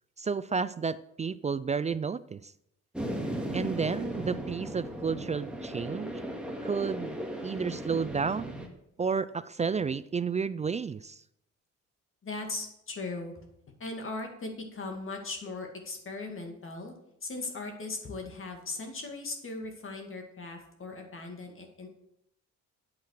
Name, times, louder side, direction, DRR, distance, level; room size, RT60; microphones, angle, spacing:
voice 1, 0.2-2.5 3.5-6.2 6.6-7.2 7.4-8.5 9.0-11.2, right 5 dB, 25° right, 16 dB, 0.3 m, -31 dB
sound 1, 2.9-8.7, right 1 dB, 5° right, 2.0 m, -36 dB
voice 2, 12.2-13.3 13.8-16.9 17.2-21.9, left 3 dB, 45° left, 3 dB, 2.2 m, -38 dB
8.7 x 7.6 x 6.5 m, 0.78 s
cardioid pair, 90°, 30 cm